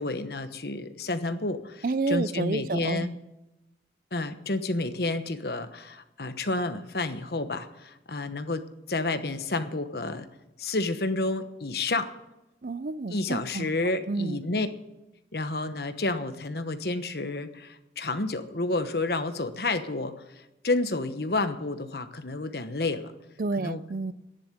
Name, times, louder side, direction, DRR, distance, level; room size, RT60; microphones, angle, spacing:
voice 1, 0.0-3.2 4.1-10.3 10.6-12.2 13.1-14.7 15.3-23.1 23.6-23.8, left 2 dB, 60° left, 1.1 m, -30 dB
voice 2, 1.8-3.1 12.6-13.7 14.1-14.4 23.4-24.1, right 3 dB, 50° right, 0.5 m, -29 dB
11.0 x 10.5 x 9.7 m
head